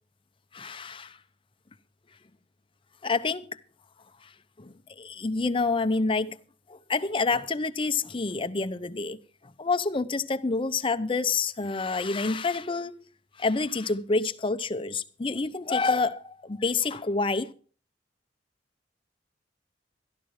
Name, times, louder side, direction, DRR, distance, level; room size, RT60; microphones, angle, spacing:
voice 1, 0.5-1.2 3.0-3.5 4.2-4.3 4.6-6.4 6.7-9.2 9.4-13.0 13.4-17.5, left 3 dB, 30° left, 0.6 m, -28 dB
13.5 x 11.5 x 4.8 m
head